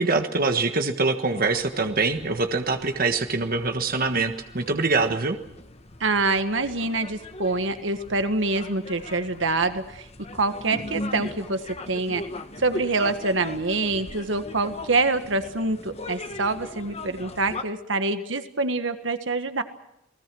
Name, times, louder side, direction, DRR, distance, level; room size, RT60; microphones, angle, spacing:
voice 1, 0.0-5.4, right 3 dB, 50° right, 6 dB, 1.5 m, -24 dB
sound 1, 1.3-17.6, left 2 dB, 30° left, 1.3 m, -39 dB
voice 2, 6.0-10.1 10.3-12.2 12.6-19.6, right 3 dB, 70° right, 8 dB, 1.6 m, -26 dB
29.0 x 19.5 x 6.2 m, 0.85 s
head